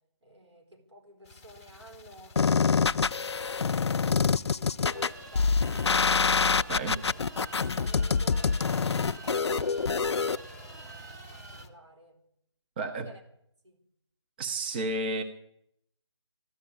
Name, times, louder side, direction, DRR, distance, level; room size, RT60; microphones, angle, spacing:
voice 1, 0.2-7.1 7.4-12.2 12.9-13.2 13.6-13.8, equal, 75° right, 4.3 m, -53 dB
sound 1, 1.2-11.7, left 1 dB, 10° left, 0.8 m, -51 dB
sound 2, 2.4-10.4, left 5 dB, 70° left, 0.5 m, -26 dB
sound 3, 4.9-11.6, right 3 dB, 35° right, 1.7 m, -48 dB
voice 2, 12.8-13.1 14.4-15.2, right 2 dB, 20° right, 0.8 m, -31 dB
14.0 x 11.0 x 8.5 m
figure-of-eight pair, 160°, 15 cm